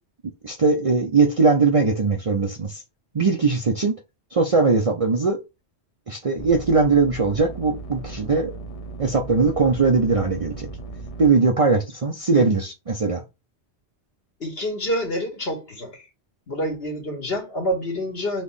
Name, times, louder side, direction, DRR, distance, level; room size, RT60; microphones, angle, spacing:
voice 1, 0.4-2.8 3.1-3.9 4.3-5.4 6.1-8.5 9.0-10.7 11.2-13.2, right 4 dB, 40° right, 0.6 m, -20 dB
sound 1, 6.4-11.3, right 3 dB, 35° left, 0.7 m, -36 dB
voice 2, 14.4-16.0 16.5-18.4, equal, 60° left, 2.0 m, -27 dB
4.1 x 3.0 x 3.4 m
omnidirectional pair, 1.2 m